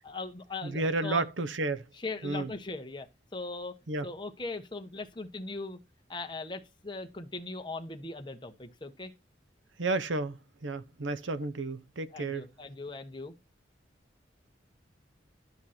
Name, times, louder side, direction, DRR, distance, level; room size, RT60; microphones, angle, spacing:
voice 1, 0.0-1.2 2.0-3.1 3.3-3.7 4.0-5.8 6.1-9.1 12.1-13.3, left 3 dB, 25° left, 1.3 m, -39 dB
voice 2, 0.6-1.8 2.2-2.5 3.9-4.1 9.8-12.5, right 2 dB, 85° right, 0.8 m, -32 dB
12.0 x 6.4 x 4.4 m
head